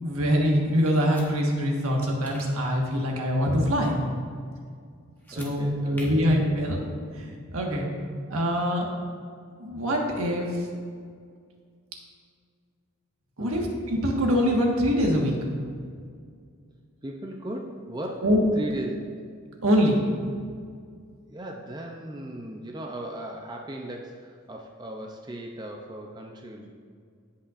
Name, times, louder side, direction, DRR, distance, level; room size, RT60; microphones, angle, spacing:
voice 1, 0.0-4.0 5.3-6.8 7.2-7.8 8.3-8.9 9.6-10.6 13.4-15.3 18.2-18.4 19.6-20.0, equal, 80° right, 0 dB, 1.5 m, -24 dB
sound 1, 0.8-1.3 2.0-2.5 5.2-5.5 5.9-6.1, left 1 dB, 10° left, 1.0 m, -45 dB
voice 2, 5.3-6.3 13.4-13.6 17.0-18.3 18.5-19.2 21.3-26.7, right 1 dB, 20° right, 1 dB, 0.5 m, -37 dB
16.5 x 5.6 x 2.5 m, 2.1 s
head